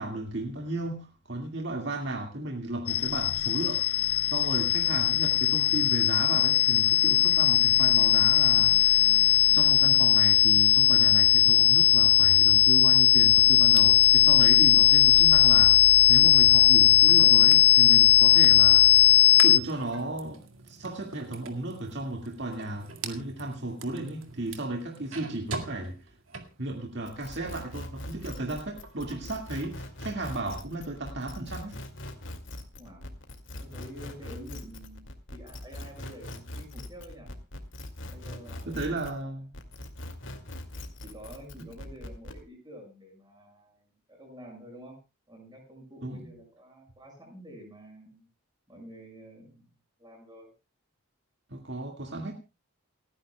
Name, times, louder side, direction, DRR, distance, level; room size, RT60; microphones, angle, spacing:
voice 1, 0.0-9.1 9.5-19.1 19.4-26.0 26.6-31.8 38.7-39.5 41.6-41.7 46.0-46.3 51.5-52.3, right 2 dB, 55° right, 2 dB, 2.0 m, -35 dB
sound 1, 2.9-19.6, left 14 dB, 90° left, 0.6 m, -19 dB
sound 2, 12.6-27.7 28.1-29.7, right 4 dB, 70° right, 2.0 m, -45 dB
sound 3, 27.0-39.2 39.5-42.4, left 1 dB, 60° left, 2.3 m, -41 dB
voice 2, 32.7-33.1 33.6-37.3 38.1-39.4 41.0-45.0 45.3-48.3 48.7-50.5, equal, 20° right, 1 dB, 6.2 m, -48 dB
28.5 x 10.0 x 2.3 m, 0.29 s
head